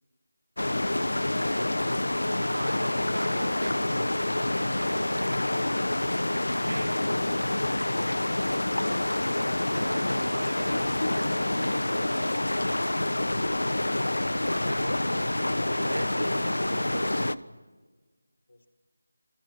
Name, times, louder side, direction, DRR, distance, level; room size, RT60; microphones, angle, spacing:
sound 1, 0.6-17.4, left 1 dB, 85° left, 1.2 m, -27 dB
voice 1, 2.4-5.7 6.7-7.2 9.7-12.4 14.5-15.2 15.8-17.4, right 2 dB, 60° right, 7 dB, 2.5 m, -40 dB
voice 2, 18.5-18.7, left 2 dB, 70° left, 9 dB, 4.8 m, -49 dB
29.5 x 22.5 x 7.8 m, 1.3 s
figure-of-eight pair, 165°, 0 cm